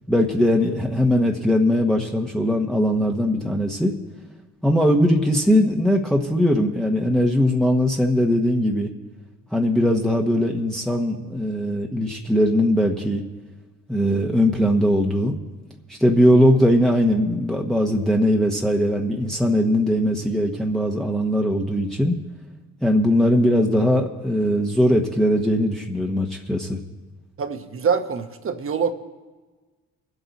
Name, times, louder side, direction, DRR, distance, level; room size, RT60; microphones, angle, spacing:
voice 1, 0.1-3.9 4.6-8.9 9.5-13.2 13.9-15.4 15.9-22.1 22.8-26.8, equal, ahead, 0 dB, 1.1 m, -20 dB
voice 2, 27.4-28.9, right 6 dB, 45° right, 8 dB, 1.2 m, -24 dB
23.0 x 7.9 x 4.2 m, 1.3 s
cardioid pair, 90°, 30 cm